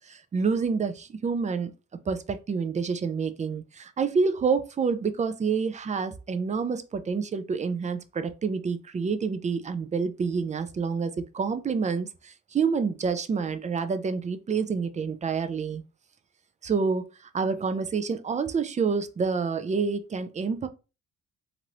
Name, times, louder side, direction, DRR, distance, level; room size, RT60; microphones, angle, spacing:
voice 1, 0.1-1.7 2.1-15.8 16.6-20.7, right 5 dB, 25° right, 0.4 m, -28 dB
3.0 x 2.6 x 2.9 m
cardioid pair, 90°, 30 cm